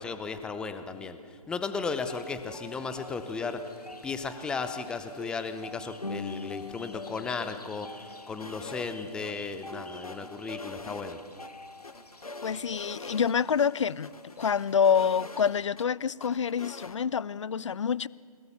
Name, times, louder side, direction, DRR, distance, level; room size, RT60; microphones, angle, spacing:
voice 1, 0.0-3.7 4.0-11.2, left 4 dB, 5° left, 0.6 m, -35 dB
sound 1, 1.8-15.7, left 2 dB, 85° left, 1.3 m, -44 dB
sound 2, 8.4-9.0 9.2-9.3 9.7-11.5 11.8-13.3 13.6-13.7 14.0-15.9 16.2-17.0, left 3 dB, 70° left, 1.5 m, -45 dB
voice 2, 12.4-18.1, left 7 dB, 50° left, 0.5 m, -27 dB
22.5 x 20.5 x 6.9 m
figure-of-eight pair, 135°, 19 cm